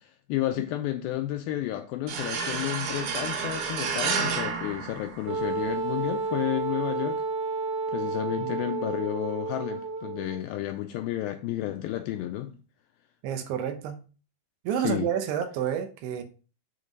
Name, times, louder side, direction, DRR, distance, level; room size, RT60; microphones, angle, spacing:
voice 1, 0.0-7.2 7.9-12.6 14.8-15.1, left 13 dB, 85° left, 2.1 m, -31 dB
sound 1, 2.1-5.7, right 5 dB, 65° right, 2.1 m, -30 dB
Wind instrument woodwind instrument, 5.3-10.4, right 4 dB, 50° right, 1.8 m, -31 dB
voice 2, 13.2-14.0 14.6-16.2, right 9 dB, 85° right, 3.0 m, -29 dB
7.7 x 3.7 x 5.1 m
omnidirectional pair, 4.6 m